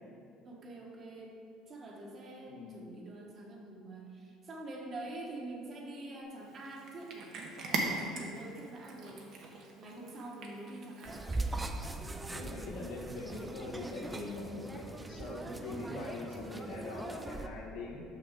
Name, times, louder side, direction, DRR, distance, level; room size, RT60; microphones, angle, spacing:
voice 1, 0.4-1.3 1.7-7.3 7.6-9.3 9.8-11.3, right 2 dB, 40° right, -1 dB, 1.3 m, -46 dB
Cat, 6.4-11.6, right 3 dB, 60° right, 1.0 m, -41 dB
sound 1, 11.0-17.5, right 2 dB, 15° right, 0.5 m, -40 dB
voice 2, 12.3-18.0, left 2 dB, 85° left, -3 dB, 1.3 m, -43 dB
6.2 x 5.8 x 3.7 m, 2.5 s
supercardioid pair, 100°, 0 cm